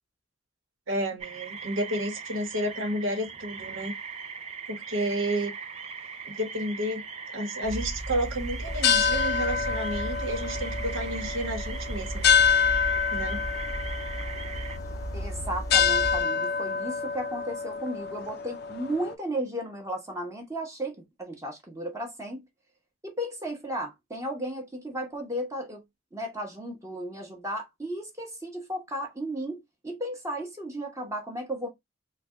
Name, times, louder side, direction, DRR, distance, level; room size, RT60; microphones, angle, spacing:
voice 1, 0.9-3.9 4.7-5.5 6.3-7.0 7.3-12.3 13.1-13.4, right 1 dB, 90° right, 1.0 m, -31 dB
sound 1, 1.2-14.8, right 5 dB, 30° right, 0.4 m, -40 dB
sound 2, 7.6-16.2, equal, 15° left, 0.7 m, -36 dB
sound 3, 8.7-19.1, left 6 dB, 55° left, 0.4 m, -27 dB
voice 2, 15.1-22.4 23.0-25.8 26.1-31.7, right 1 dB, 15° right, 0.8 m, -34 dB
3.2 x 2.2 x 3.5 m
head